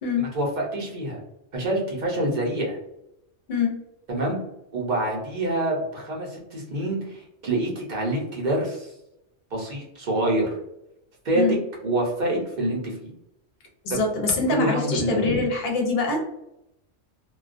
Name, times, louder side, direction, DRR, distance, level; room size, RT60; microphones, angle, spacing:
voice 1, 0.2-1.2 1.5-2.8 4.1-4.4 4.7-8.9 9.5-10.6 11.2-11.6 11.8-13.0 13.9-14.0 14.5-15.2, right 1 dB, 45° right, -3 dB, 0.7 m, -26 dB
voice 2, 13.8-16.3, left 3 dB, 60° left, 0 dB, 0.8 m, -24 dB
2.2 x 2.2 x 2.4 m, 0.85 s
omnidirectional pair, 1.3 m